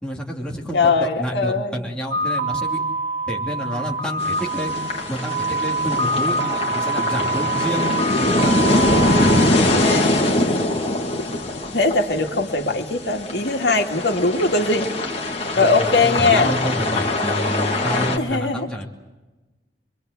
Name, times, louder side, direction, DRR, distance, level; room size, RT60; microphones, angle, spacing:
voice 1, 0.0-2.8 3.3-4.8 5.1-8.6 15.5-18.9, equal, 5° left, -2 dB, 2.8 m, -29 dB
voice 2, 0.7-1.8 9.1-10.2 11.7-14.9 15.4-16.6 18.2-18.7, left 3 dB, 70° left, 3 dB, 2.2 m, -21 dB
sound 1, 2.1-9.5, right 2 dB, 80° right, 1.4 m, -25 dB
sound 2, 4.2-18.2, left 1 dB, 35° left, 2.7 m, -23 dB
25.0 x 24.5 x 8.2 m, 1.1 s
head